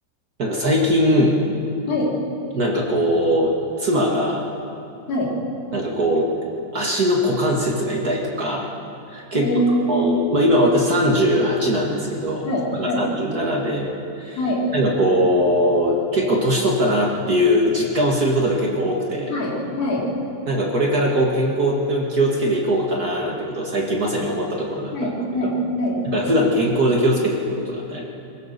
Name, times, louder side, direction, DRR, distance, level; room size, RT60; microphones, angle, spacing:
voice 1, 0.4-1.4 2.5-4.4 5.7-6.3 6.7-8.7 9.1-9.5 9.9-12.5 12.8-13.9 14.2-14.4 14.7-19.3 20.5-24.9 26.1-28.0, equal, 55° right, -2 dB, 1.0 m, -20 dB
voice 2, 9.3-10.0 12.5-13.0 14.4-14.6 19.3-20.0 24.9-26.0, equal, 60° left, -4 dB, 5.2 m, -23 dB
23.0 x 16.5 x 6.8 m, 2.7 s
omnidirectional pair, 4.7 m